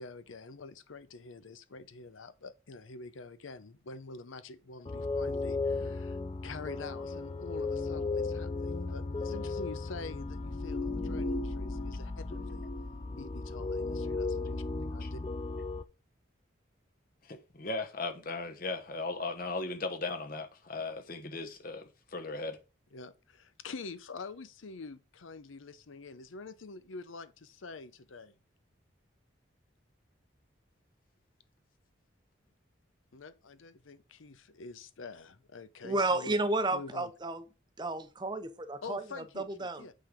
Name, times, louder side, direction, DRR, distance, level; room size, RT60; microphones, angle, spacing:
voice 1, 0.0-6.2 6.4-12.7 13.2-15.2 22.9-28.4 33.1-36.4 36.7-37.1 38.8-39.9, left 3 dB, 85° left, 0.7 m, -46 dB
sound 1, 4.9-15.8, left 3 dB, 25° left, 0.5 m, -35 dB
voice 2, 17.2-22.6, left 3 dB, 45° left, 1.1 m, -37 dB
voice 3, 35.8-37.4 37.8-39.9, right 2 dB, 20° right, 0.7 m, -32 dB
8.5 x 3.8 x 5.0 m
head